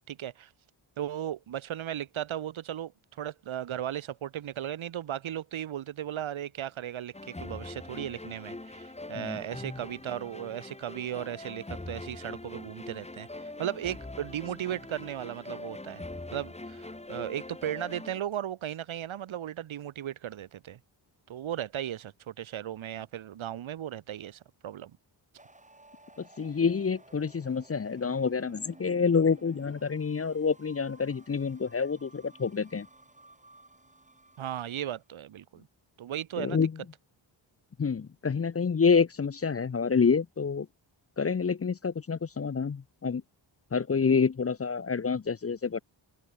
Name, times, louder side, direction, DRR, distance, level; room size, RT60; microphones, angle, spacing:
voice 1, 0.1-0.5 1.0-16.0 16.3-20.8 21.3-24.9 34.4-35.7 36.0-36.6, right 11 dB, 80° right, 1.1 m, -36 dB
sound 1, 7.1-18.2, left 2 dB, 15° left, 2.5 m, -42 dB
sound 2, 25.4-35.0, right 2 dB, 15° right, 5.3 m, -56 dB
voice 2, 26.2-32.9 36.4-36.7 37.8-40.7 41.2-43.2 43.7-45.8, left 5 dB, 30° left, 0.7 m, -27 dB
open air
wide cardioid pair, 125°, 48 cm